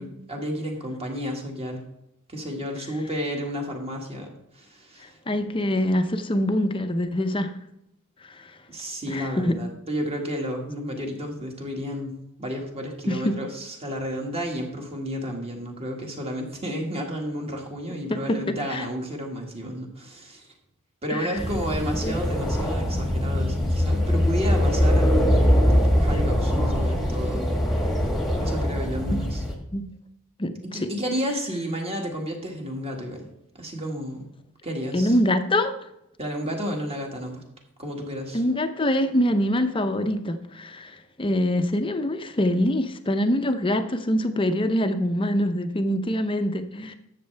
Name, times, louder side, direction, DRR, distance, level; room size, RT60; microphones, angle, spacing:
voice 1, 0.0-1.8 2.3-5.2 8.7-20.5 21.0-27.5 28.4-29.4 30.6-33.2 33.6-34.3 34.6-35.1 36.2-37.4 37.8-38.4, equal, 25° right, 1 dB, 1.8 m, -31 dB
voice 2, 5.3-7.5 8.2-8.5 9.1-9.6 13.1-13.4 18.1-18.4 18.7-18.8 21.1-21.4 22.0-22.2 29.1-29.2 29.7-29.8 30.4-30.5 34.9-35.7 38.3-46.9, left 1 dB, 25° left, 8 dB, 0.6 m, -24 dB
sound 1, 21.4-29.5, equal, ahead, 1.4 m, -22 dB
12.5 x 7.6 x 3.4 m, 0.83 s
head